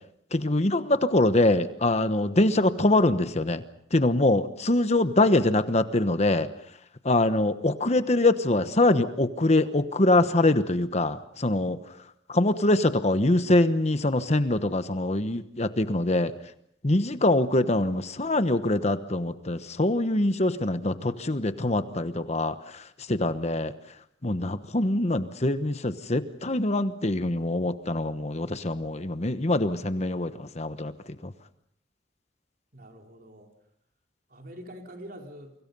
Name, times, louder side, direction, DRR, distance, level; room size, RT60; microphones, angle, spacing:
voice 1, 0.3-3.6 3.9-6.5 7.0-11.8 12.3-16.3 16.8-23.7 24.2-30.9 31.2-31.3, left 2 dB, 35° left, 11 dB, 1.1 m, -24 dB
voice 2, 32.7-33.5 34.3-35.5, equal, 55° right, 2 dB, 4.1 m, -44 dB
29.5 x 25.0 x 5.5 m, 0.69 s
head